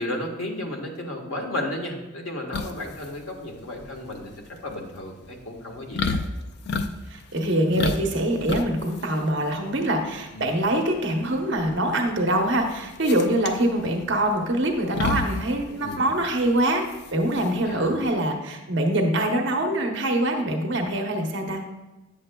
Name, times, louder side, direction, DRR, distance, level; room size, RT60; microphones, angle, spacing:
voice 1, 0.0-6.2 10.3-10.5 15.8-16.1 17.7-18.0, left 1 dB, 85° left, 1 dB, 1.2 m, -33 dB
sound 1, 2.5-18.1, left 3 dB, 55° left, 0.4 m, -33 dB
voice 2, 7.1-16.8 17.1-21.6, right 1 dB, 60° right, 2 dB, 0.8 m, -24 dB
8.8 x 7.0 x 2.2 m, 1.1 s
head